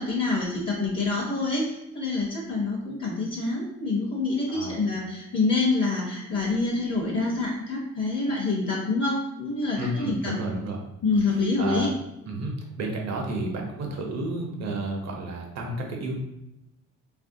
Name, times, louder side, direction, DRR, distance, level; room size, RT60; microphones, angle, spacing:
voice 1, 0.0-10.4 11.0-11.9, left 3 dB, 40° left, -2 dB, 0.7 m, -26 dB
voice 2, 9.8-10.8 11.6-11.9 12.3-16.2, right 2 dB, 60° right, 1 dB, 0.8 m, -31 dB
3.1 x 2.5 x 2.6 m, 0.87 s
cardioid pair, 90°, 30 cm